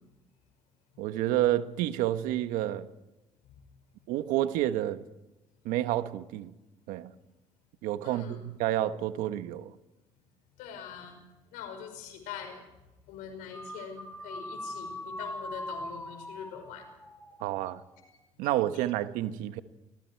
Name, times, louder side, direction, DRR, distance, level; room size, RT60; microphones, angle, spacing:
voice 1, 1.0-2.9 4.1-5.0 5.6-6.5 6.9-7.1 7.8-9.7 17.4-17.8 18.4-19.6, right 13 dB, 85° right, 1.3 m, -29 dB
voice 2, 8.0-8.4 10.6-11.2 11.5-12.7 13.1-16.8 18.7-18.9, left 7 dB, 85° left, 5.6 m, -43 dB
sound 1, 13.5-18.0, left 1 dB, 10° left, 4.2 m, -42 dB
26.5 x 21.0 x 4.7 m
supercardioid pair, 90°, 13 cm